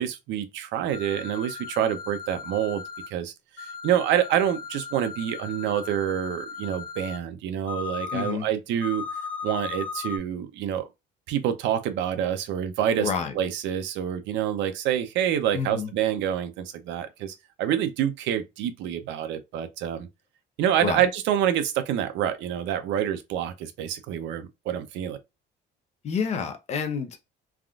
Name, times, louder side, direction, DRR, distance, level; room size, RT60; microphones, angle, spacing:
voice 1, 0.0-9.0 9.4-10.9 11.3-13.1 13.3-20.1 20.6-25.2, right 10 dB, 70° right, 0.6 m, -27 dB
sound 1, 0.9-3.1 3.6-7.2 7.7-8.3 8.8-10.2, left 5 dB, 75° left, 1.2 m, -37 dB
voice 2, 8.1-8.5 13.0-13.4 15.5-15.9 20.8-21.0 26.0-27.3, left 6 dB, 35° left, 0.5 m, -29 dB
3.5 x 2.4 x 2.3 m
cardioid pair, 170°, 19 cm